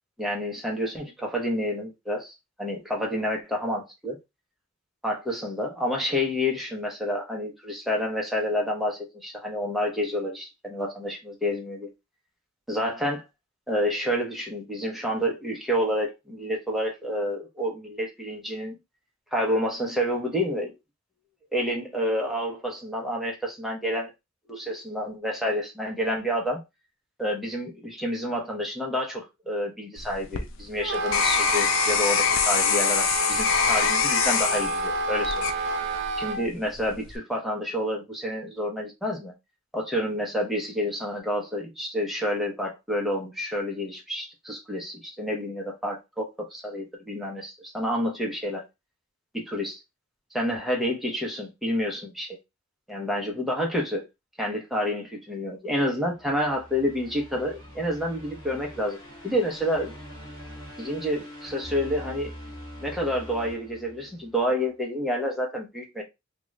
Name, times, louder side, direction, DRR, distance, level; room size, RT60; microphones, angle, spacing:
voice 1, 0.2-4.2 5.0-11.9 12.7-13.2 13.7-18.7 19.3-20.7 21.5-24.1 24.5-26.6 27.2-35.5 36.2-39.3 39.7-48.6 49.3-49.8 50.3-52.4 52.9-54.1 54.4-59.0 59.2-59.9 60.8-62.3 62.8-66.0, equal, ahead, 0.8 m, -29 dB
sound 1, 30.0-36.2 36.7-37.2, left 7 dB, 80° left, 0.5 m, -25 dB
Wind instrument woodwind instrument, 30.8-36.4, right 2 dB, 60° right, 0.5 m, -29 dB
sound 2, 56.1-64.4, equal, 15° left, 1.8 m, -43 dB
2.9 x 2.5 x 3.1 m
head